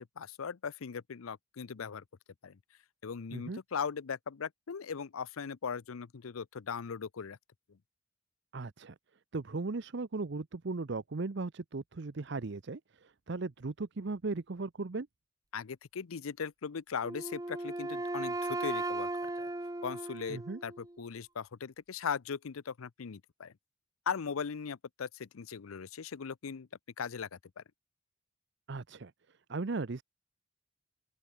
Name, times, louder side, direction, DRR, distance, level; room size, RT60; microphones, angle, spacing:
voice 1, 0.2-2.0 2.4-2.6 3.0-7.4 15.5-19.5 19.8-23.5 24.1-26.7 27.0-27.6, left 6 dB, 85° left, 0.6 m, -39 dB
voice 2, 8.5-8.9 9.3-15.1 20.3-20.6 28.7-29.1 29.5-30.0, right 3 dB, 55° right, 0.7 m, -37 dB
Wind instrument woodwind instrument, 17.0-21.0, right 2 dB, 15° right, 0.7 m, -37 dB
open air
head